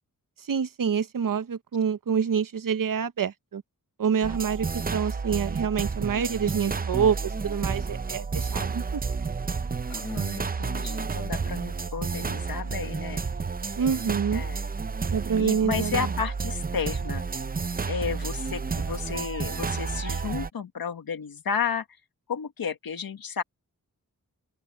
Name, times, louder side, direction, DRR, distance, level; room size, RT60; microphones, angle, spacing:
voice 1, 0.5-3.6 4.0-9.0 13.8-14.4 15.1-16.1, right 7 dB, 70° right, 1.0 m, -27 dB
sound 1, 4.2-20.5, right 4 dB, 25° right, 0.6 m, -31 dB
voice 2, 9.9-13.2 14.3-14.6 15.4-17.2 17.9-21.8 22.3-23.4, left 6 dB, 90° left, 1.7 m, -32 dB
open air
wide cardioid pair, 130°, 35 cm